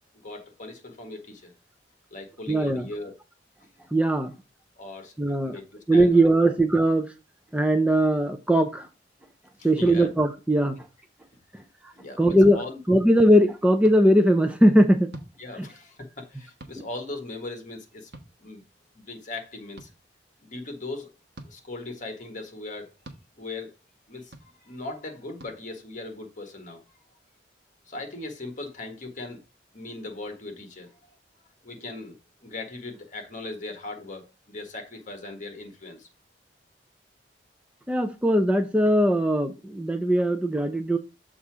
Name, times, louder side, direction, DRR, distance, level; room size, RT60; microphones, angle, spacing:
voice 1, 0.2-1.5 2.1-3.2 4.8-5.1 5.4-6.5 9.6-10.1 11.9-13.0 15.4-18.1 18.4-18.6 18.9-19.9 20.4-21.1 21.4-22.9 23.4-23.7 24.1-24.3 24.6-26.8 27.9-29.4 29.7-31.0 31.6-36.1, left 2 dB, 45° left, 1.7 m, -39 dB
voice 2, 2.5-2.9 3.9-4.3 5.2-5.6 5.9-7.1 7.5-8.9 9.6-10.8 12.2-12.6 12.9-15.1 15.6-15.7 37.9-41.0, right 1 dB, 5° right, 0.5 m, -20 dB
sound 1, 13.8-14.0 15.1-15.3 16.6-16.8 18.1-18.3 19.8-19.9 21.3-21.5 23.0-23.2 24.3-24.5 25.4-25.5, right 1 dB, 65° right, 1.2 m, -43 dB
7.0 x 3.8 x 4.7 m
head